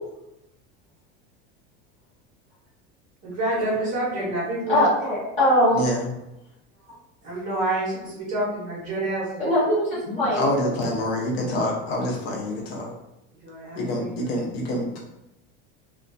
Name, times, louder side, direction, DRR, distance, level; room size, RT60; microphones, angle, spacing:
voice 1, 3.2-4.8 7.2-9.5 13.4-14.2, right 1 dB, 25° right, -6 dB, 0.8 m, -28 dB
voice 2, 4.7-5.8 9.4-10.5, equal, 25° left, -9 dB, 1.1 m, -21 dB
voice 3, 10.1-12.9 13.7-15.0, left 1 dB, 85° left, -1 dB, 0.8 m, -27 dB
2.2 x 2.2 x 2.5 m, 0.89 s
cardioid pair, 170°, 30 cm